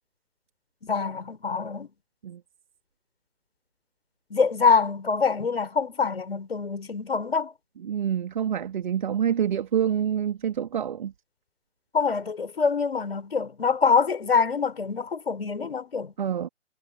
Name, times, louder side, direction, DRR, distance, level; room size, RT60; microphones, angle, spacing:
voice 1, 0.8-1.9 4.3-7.5 11.9-16.1, left 5 dB, 55° left, 5.2 m, -25 dB
voice 2, 7.8-11.1 16.2-16.5, right 9 dB, 40° right, 2.9 m, -27 dB
figure-of-eight pair, 135°, 35 cm